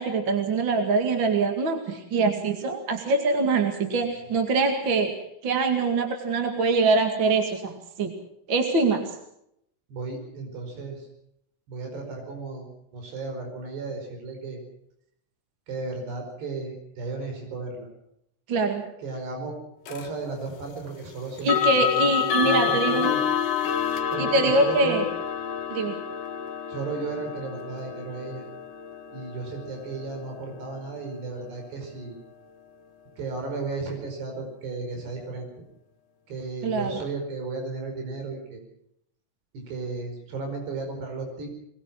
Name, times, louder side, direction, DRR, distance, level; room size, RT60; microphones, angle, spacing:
voice 1, 0.0-8.1 8.5-9.2 18.5-18.8 21.4-23.1 24.2-25.0 25.7-26.0 36.6-37.0, right 3 dB, 40° right, 4 dB, 2.1 m, -24 dB
voice 2, 9.9-11.1 11.7-14.6 15.7-17.9 19.0-19.6 19.9-22.1 22.4-23.2 24.1-25.1 26.7-28.5 29.1-32.2 33.2-35.5 36.3-38.6 39.5-41.5, right 3 dB, 80° right, 3 dB, 7.0 m, -34 dB
sound 1, 19.9-20.1 21.4-32.3, left 9 dB, 60° left, 2.8 m, -29 dB
22.0 x 21.5 x 6.1 m, 0.76 s
omnidirectional pair, 4.7 m